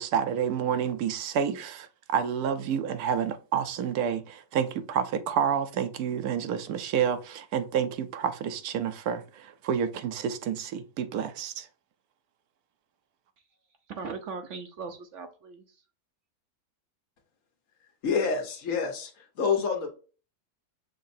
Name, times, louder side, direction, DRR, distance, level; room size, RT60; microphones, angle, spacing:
voice 1, 0.0-11.7, right 8 dB, 80° right, 1.1 m, -29 dB
voice 2, 13.9-15.8, right 4 dB, 65° right, 0.8 m, -39 dB
voice 3, 18.0-19.9, left 5 dB, 60° left, 1.3 m, -28 dB
6.6 x 3.1 x 2.6 m
omnidirectional pair, 1.6 m